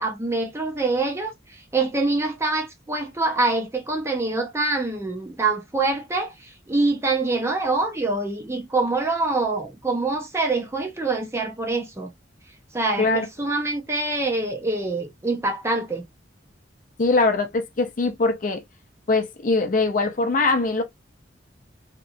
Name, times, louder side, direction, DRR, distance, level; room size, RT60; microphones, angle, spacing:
voice 1, 0.0-12.1 12.7-16.0, right 3 dB, 15° right, 0.5 m, -25 dB
voice 2, 17.0-18.6 19.1-20.8, left 3 dB, 45° left, 0.5 m, -22 dB
2.8 x 2.3 x 2.4 m
head